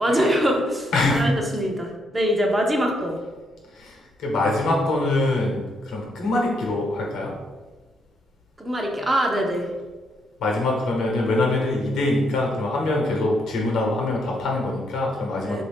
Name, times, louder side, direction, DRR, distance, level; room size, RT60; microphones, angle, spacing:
voice 1, 0.0-3.2 8.6-9.7 15.5-15.6, equal, 20° right, 1 dB, 0.6 m, -23 dB
voice 2, 0.9-1.3 3.7-7.3 10.4-15.6, left 2 dB, 80° left, -2 dB, 0.9 m, -24 dB
3.0 x 2.6 x 3.4 m, 1.3 s
cardioid pair, 90°, 0 cm